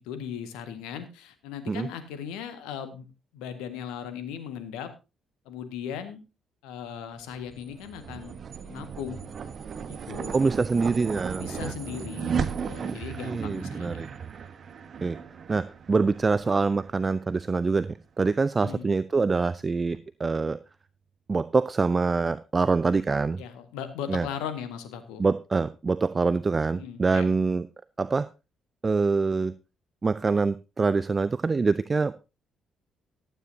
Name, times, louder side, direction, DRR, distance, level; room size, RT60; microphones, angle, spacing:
voice 1, 0.1-3.1 3.3-4.9 5.5-6.2 6.6-8.4 8.6-9.3 9.9-10.4 11.4-14.2 18.6-18.8 23.4-25.2 26.7-27.3, left 8 dB, 70° left, 10 dB, 1.7 m, -38 dB
sound 1, 7.3-17.9, right 6 dB, 50° right, 1.3 m, -36 dB
voice 2, 10.3-11.7 12.8-13.0 13.3-14.1 15.0-15.2 15.5-17.9 18.2-20.6 21.3-23.4 24.1-24.3 25.2-27.7 28.0-28.3 28.8-29.5 30.0-32.3, right 4 dB, 30° right, 16 dB, 0.6 m, -25 dB
14.5 x 12.5 x 2.8 m, 0.28 s
figure-of-eight pair, 40°, 0 cm